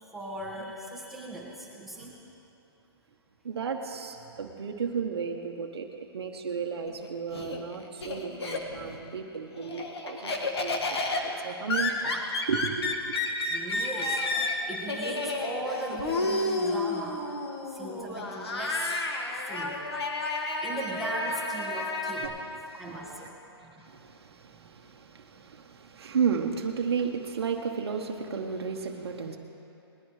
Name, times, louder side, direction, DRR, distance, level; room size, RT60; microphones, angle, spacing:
voice 1, 0.1-2.1 13.5-17.2 17.7-18.9 19.5-22.3 22.7-23.3 23.6-23.8 24.6-24.7, right 1 dB, ahead, -5 dB, 1.7 m, -38 dB
voice 2, 3.4-12.1 12.5-13.1 22.2-23.3 23.8-29.4, right 6 dB, 75° right, 2 dB, 1.1 m, -34 dB
Laughter, 6.9-9.0 9.4-22.3, left 2 dB, 75° left, 1.8 m, -31 dB
20.5 x 14.5 x 3.2 m, 2.9 s
hypercardioid pair, 140°, 13 cm